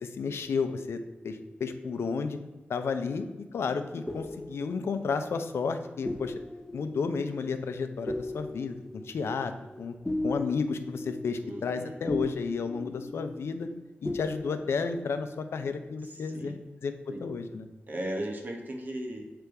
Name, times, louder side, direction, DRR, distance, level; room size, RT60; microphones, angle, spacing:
voice 1, 0.0-1.0 1.2-2.4 2.7-3.3 3.5-6.3 6.7-9.5 9.8-9.9 10.2-13.7 14.0-16.6 16.8-16.9 17.2-17.7, left 5 dB, 85° left, 9 dB, 0.5 m, -32 dB
sound 1, 3.7-13.8 14.0-14.9, left 1 dB, 10° left, 0.4 m, -38 dB
voice 2, 11.4-12.0 16.0-16.5 17.1-17.3 17.9-19.3, right 1 dB, 45° right, 2 dB, 1.0 m, -37 dB
6.7 x 3.4 x 4.7 m, 1.2 s
wide cardioid pair, 135°, 4 cm